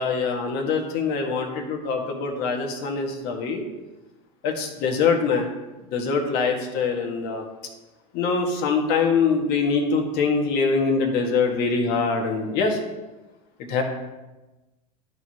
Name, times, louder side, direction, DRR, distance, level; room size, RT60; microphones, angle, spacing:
voice 1, 0.0-3.6 4.4-5.5 5.9-7.4 8.1-12.8 13.7-13.8, left 5 dB, 55° left, 2 dB, 1.7 m, -23 dB
13.0 x 4.8 x 3.0 m, 1.1 s
hypercardioid pair, 85°, 19 cm